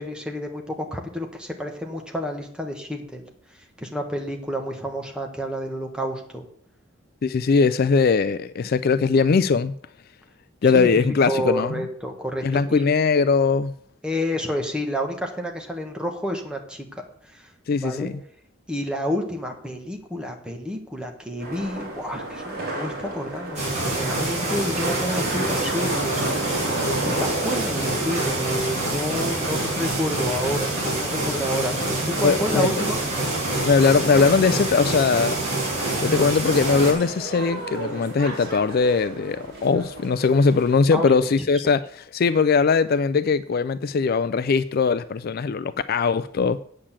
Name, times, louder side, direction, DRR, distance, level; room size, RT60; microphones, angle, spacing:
voice 1, 0.0-3.3 3.8-6.4 10.7-13.0 14.0-17.5 17.7-18.1 18.7-31.8 32.1-33.0 40.9-41.3 41.6-41.7, equal, 5° right, 1.4 m, -30 dB
voice 2, 7.2-9.7 10.6-11.7 12.4-13.7 17.7-18.1 32.2-32.7 33.6-35.4 36.0-46.6, left 5 dB, 45° left, 0.3 m, -20 dB
sound 1, 21.4-40.8, right 2 dB, 50° right, 3.8 m, -34 dB
sound 2, 23.6-36.9, right 2 dB, 35° right, 3.9 m, -26 dB
8.7 x 6.6 x 7.4 m
head